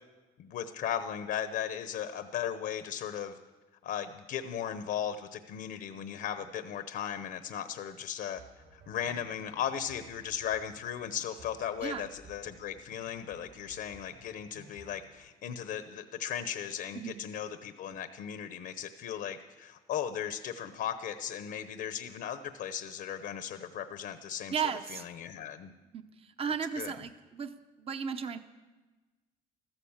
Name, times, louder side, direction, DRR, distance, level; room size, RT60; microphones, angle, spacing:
voice 1, 0.4-3.4 3.8-8.4 8.7-24.5 24.9-25.7 26.8-26.9, left 9 dB, 70° left, 10 dB, 0.9 m, -37 dB
sound 1, 8.4-15.2, right 2 dB, 85° right, 6.5 m, -57 dB
voice 2, 24.5-25.0 25.9-27.5 27.8-28.4, right 7 dB, 35° right, 9 dB, 0.8 m, -35 dB
14.0 x 13.5 x 7.3 m, 1.2 s
cardioid pair, 110°, 17 cm